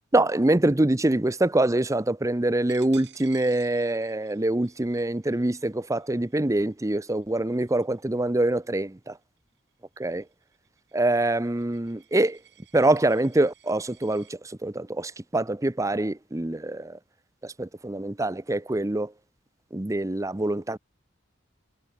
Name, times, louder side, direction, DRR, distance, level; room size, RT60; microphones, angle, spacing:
voice 1, 0.1-9.2 10.0-10.2 10.9-12.4 12.7-17.0 17.4-19.1 19.7-20.8, right 1 dB, 15° right, 0.7 m, -25 dB
Coin (dropping), 2.7-8.1 8.6-8.8 9.2-14.3, right 11 dB, 65° right, 6.1 m, -55 dB
head